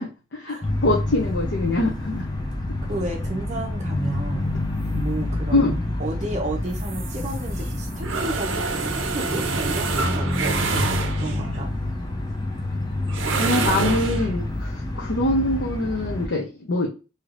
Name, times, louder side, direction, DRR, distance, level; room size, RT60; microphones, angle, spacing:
voice 1, 0.0-2.3 5.5-5.8 13.1-16.9, left 1 dB, 70° left, -1 dB, 0.7 m, -24 dB
sound 1, 0.6-16.3, left 1 dB, 20° left, 0.5 m, -28 dB
voice 2, 2.9-4.5 4.9-5.7 6.0-10.9 11.1-11.7, right 1 dB, 35° right, 0 dB, 0.6 m, -32 dB
sound 2, 6.7-11.6 13.1-14.3, right 4 dB, 80° right, 0.5 m, -27 dB
3.2 x 2.8 x 2.5 m, 0.31 s
head